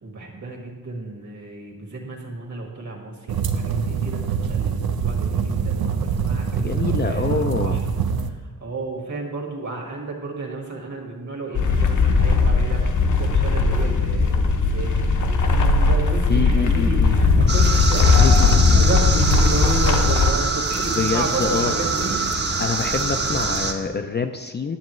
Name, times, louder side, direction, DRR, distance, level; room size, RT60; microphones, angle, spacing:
voice 1, 0.0-7.8 8.2-22.2, right 3 dB, 50° right, 1 dB, 1.7 m, -32 dB
sound 1, 3.3-8.3, right 6 dB, 75° right, 0.6 m, -24 dB
voice 2, 6.5-7.8 16.3-17.1 18.1-18.8 21.0-21.7 22.6-24.8, left 5 dB, 30° left, 6 dB, 0.4 m, -25 dB
sound 2, 11.5-20.3, left 4 dB, 55° left, 0.8 m, -18 dB
sound 3, 17.5-23.7, right 3 dB, 30° right, 0.8 m, -24 dB
9.7 x 7.4 x 3.1 m, 1.3 s
wide cardioid pair, 90°, 36 cm